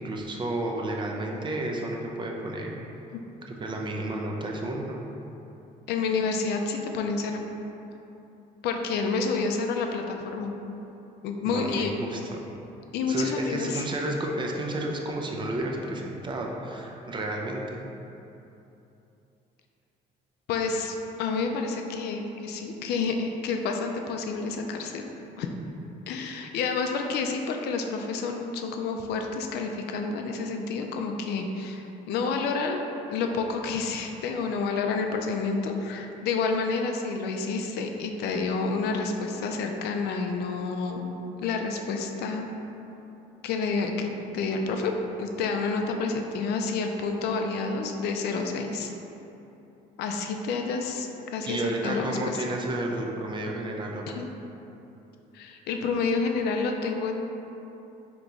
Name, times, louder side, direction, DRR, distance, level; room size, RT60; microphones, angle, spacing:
voice 1, 0.0-2.7 3.5-5.0 11.4-12.5 13.1-17.8 51.5-54.2, right 1 dB, 30° right, 0 dB, 0.5 m, -31 dB
voice 2, 5.9-7.4 8.6-10.5 11.2-11.9 12.9-13.8 20.5-25.1 25.4-25.5 26.1-32.8 33.1-41.0 41.4-42.5 43.4-48.9 50.0-52.4 54.2-54.3 55.3-57.2, left 4 dB, 75° left, 3 dB, 0.4 m, -29 dB
3.4 x 2.9 x 3.8 m, 3.0 s
cardioid pair, 110°, 17 cm